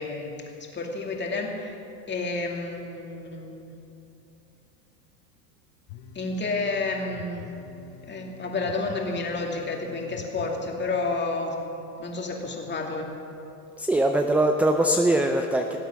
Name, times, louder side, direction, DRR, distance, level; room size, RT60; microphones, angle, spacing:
voice 1, 0.0-1.8 2.1-3.8 6.1-7.5 8.1-11.6 12.0-13.2, left 3 dB, 25° left, 1 dB, 2.3 m, -30 dB
sound 1, 5.9-11.2, left 7 dB, 55° left, 1.0 m, -46 dB
voice 2, 13.8-15.8, right 1 dB, 5° right, 5 dB, 0.4 m, -22 dB
18.0 x 8.0 x 6.0 m, 2.9 s
hypercardioid pair, 100°, 45 cm